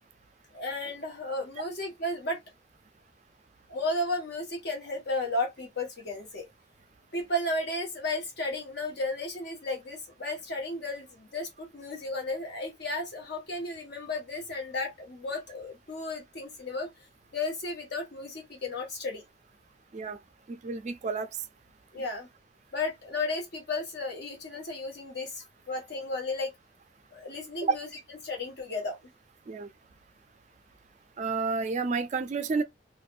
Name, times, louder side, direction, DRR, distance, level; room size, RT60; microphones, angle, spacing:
voice 1, 0.5-2.4 3.7-6.5 7.1-16.9 17.3-19.2 21.9-22.3 22.7-26.5 27.1-27.9 28.2-29.0, left 2 dB, 60° left, 1.2 m, -34 dB
voice 2, 20.5-21.3 27.6-27.8 29.5-29.7 31.2-32.6, right 4 dB, 40° right, 0.3 m, -30 dB
3.2 x 2.1 x 2.4 m
head